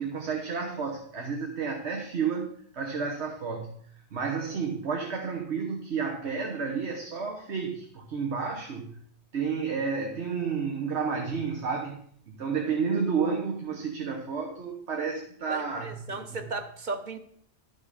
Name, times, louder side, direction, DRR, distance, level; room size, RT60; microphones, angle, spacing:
voice 1, 0.0-3.7 4.1-9.0 9.3-12.0 12.3-16.4, right 5 dB, 90° right, 1.5 m, -31 dB
voice 2, 15.5-17.2, right 3 dB, 45° right, 1.0 m, -35 dB
12.5 x 6.2 x 5.0 m
omnidirectional pair, 1.1 m